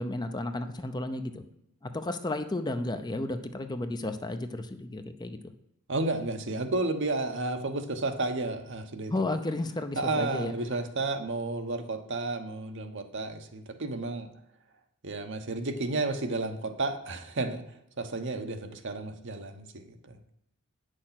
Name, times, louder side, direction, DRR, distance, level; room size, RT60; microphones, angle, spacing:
voice 1, 0.0-1.4 1.8-5.4 9.1-10.5, left 2 dB, 20° left, 8 dB, 0.6 m, -33 dB
voice 2, 5.9-9.1 10.0-14.3 15.0-17.6 18.0-20.2, right 2 dB, 60° right, 6 dB, 1.0 m, -32 dB
9.0 x 6.4 x 5.8 m, 0.78 s
head